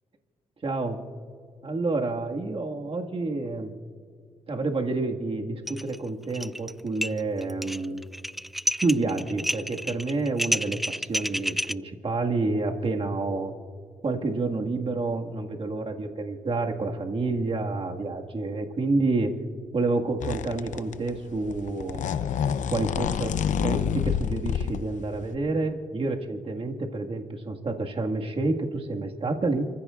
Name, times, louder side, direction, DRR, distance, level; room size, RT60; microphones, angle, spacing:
voice 1, 0.6-1.0 1.6-3.7 4.5-8.0 8.8-13.5 14.0-19.3 19.7-22.1 22.7-23.3 23.6-29.7, right 3 dB, 45° right, 2 dB, 1.9 m, -29 dB
sound 1, 5.7-6.0 6.2-6.7 7.0-11.7, equal, ahead, 0.3 m, -29 dB
sound 2, 20.2-21.1 21.3-24.8 25.3-25.4, left 8 dB, 70° left, 0.8 m, -27 dB
29.5 x 15.0 x 2.5 m, 2.2 s
supercardioid pair, 50°, 13 cm